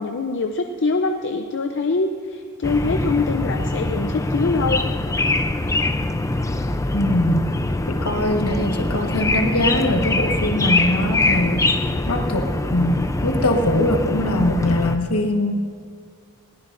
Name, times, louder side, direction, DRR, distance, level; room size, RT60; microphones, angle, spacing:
voice 1, 0.0-4.8, left 3 dB, 55° left, 5 dB, 0.6 m, -23 dB
sound 1, 2.6-15.0, left 2 dB, 15° left, 0.5 m, -23 dB
voice 2, 6.9-7.4 7.9-11.8 12.1-15.6, left 1 dB, 75° left, 3 dB, 1.4 m, -22 dB
20.5 x 17.5 x 2.6 m, 2.1 s
head